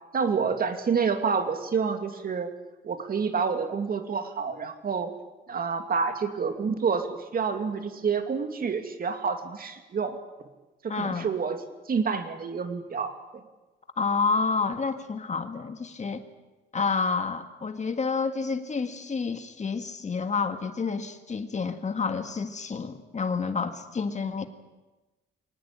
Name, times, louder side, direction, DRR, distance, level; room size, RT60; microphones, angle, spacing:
voice 1, 0.1-2.5 2.8-5.1 5.5-10.2 10.8-11.6 11.9-13.1, right 5 dB, 45° right, 7 dB, 2.6 m, -28 dB
voice 2, 10.9-11.3 14.0-16.2 16.7-24.5, left 4 dB, 35° left, 8 dB, 1.9 m, -29 dB
23.0 x 19.0 x 8.8 m, 1.1 s
cardioid pair, 90°, 20 cm